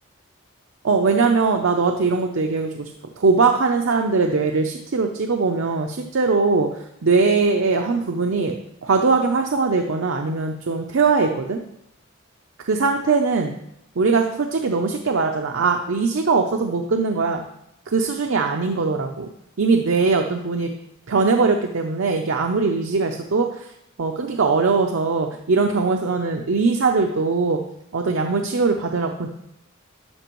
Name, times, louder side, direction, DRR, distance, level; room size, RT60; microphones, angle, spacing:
voice 1, 0.8-2.9 3.2-8.6 8.8-11.6 12.6-13.5 14.0-17.4 17.9-19.3 19.6-20.7 21.1-23.7 24.0-27.6 27.9-29.3, right 4 dB, 65° right, 3 dB, 0.6 m, -21 dB
12.0 x 5.3 x 3.0 m, 0.79 s
head